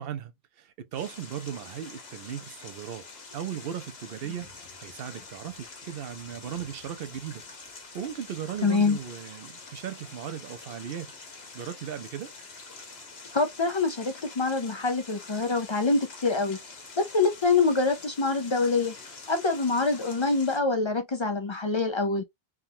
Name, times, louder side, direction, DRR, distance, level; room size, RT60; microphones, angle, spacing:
voice 1, 0.0-3.0 3.3-4.5 4.8-7.4 7.7-11.1 11.5-12.3, right 9 dB, 70° right, 0.8 m, -37 dB
sound 1, 0.9-20.6, left 4 dB, 80° left, 1.3 m, -46 dB
voice 2, 8.6-9.0 13.3-16.6 17.0-18.9 19.3-22.2, left 3 dB, 45° left, 0.3 m, -25 dB
3.6 x 2.3 x 2.7 m
omnidirectional pair, 1.0 m